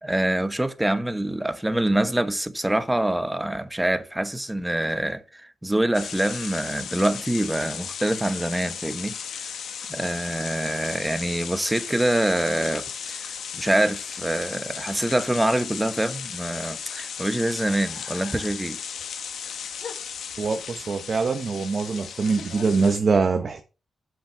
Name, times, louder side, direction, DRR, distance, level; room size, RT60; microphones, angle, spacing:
voice 1, 0.0-9.1 9.4-9.5 9.9-18.8, right 1 dB, 10° right, 1.1 m, -25 dB
sound 1, 5.9-23.0, left 7 dB, 80° left, 1.2 m, -35 dB
voice 2, 20.4-23.6, right 4 dB, 55° right, 1.1 m, -23 dB
7.9 x 6.0 x 5.9 m
cardioid pair, 75°, 0 cm